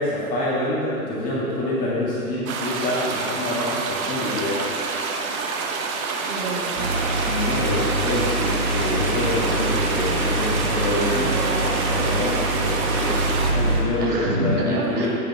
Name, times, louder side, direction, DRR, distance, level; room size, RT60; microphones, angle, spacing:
voice 1, 0.0-4.6 7.3-11.3 11.7-15.1, left 1 dB, 20° left, -8 dB, 2.0 m, -26 dB
sound 1, 2.5-13.5, right 4 dB, 65° right, 1.0 m, -28 dB
voice 2, 6.2-7.0 11.1-11.8 14.0-15.1, right 1 dB, 80° right, -2 dB, 1.7 m, -28 dB
sound 2, 6.7-13.8, right 2 dB, 45° right, 1.6 m, -24 dB
9.0 x 5.1 x 4.9 m, 2.6 s
hypercardioid pair, 140°, 45 cm